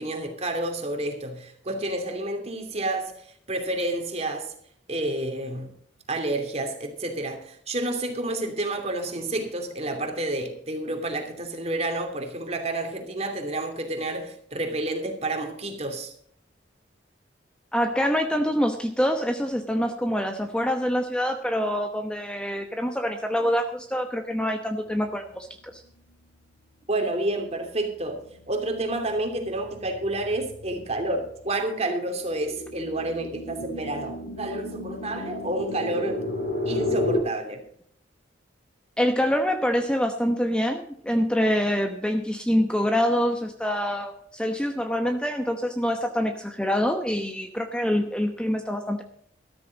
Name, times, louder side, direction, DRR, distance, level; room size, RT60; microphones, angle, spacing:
voice 1, 0.0-3.1 3.5-4.5 4.9-5.7 6.1-16.1 26.9-36.2 36.6-37.7, right 2 dB, 35° right, 5 dB, 2.8 m, -29 dB
voice 2, 17.7-25.5 25.7-25.8 39.0-49.0, equal, 5° left, 5 dB, 0.9 m, -25 dB
sound 1, 27.5-27.9 28.3-37.2, left 1 dB, 65° left, 6.5 m, -33 dB
13.5 x 13.5 x 3.9 m, 0.64 s
head